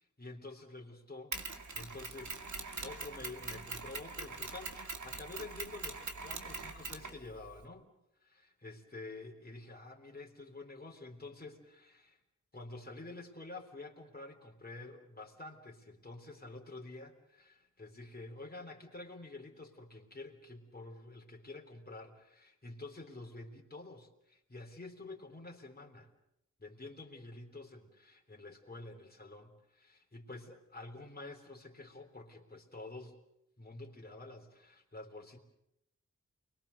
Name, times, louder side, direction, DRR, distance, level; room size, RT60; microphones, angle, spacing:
voice 1, 0.2-2.4 2.8-7.9 8.2-12.2 12.5-26.1 26.6-33.2 33.6-35.4, left 2 dB, 30° left, 2 dB, 3.6 m, -49 dB
Mechanisms, 1.3-7.6, right 3 dB, 75° right, 2.3 m, -43 dB
29.0 x 22.0 x 6.7 m, 0.79 s
wide cardioid pair, 85°, 29 cm